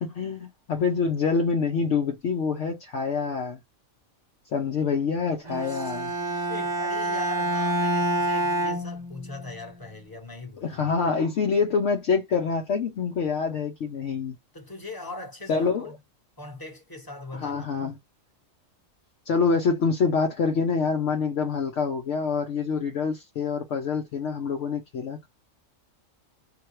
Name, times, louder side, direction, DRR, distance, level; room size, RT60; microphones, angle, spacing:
voice 1, 0.0-3.6 4.5-6.1 10.6-14.4 15.5-15.9 17.4-18.0 19.3-25.3, left 5 dB, 65° left, 1.0 m, -26 dB
Bowed string instrument, 5.5-9.6, right 1 dB, 40° right, 0.9 m, -27 dB
voice 2, 5.6-10.9 14.5-16.0 16.4-17.7, left 2 dB, 15° left, 1.1 m, -41 dB
3.8 x 2.2 x 3.0 m
omnidirectional pair, 1.4 m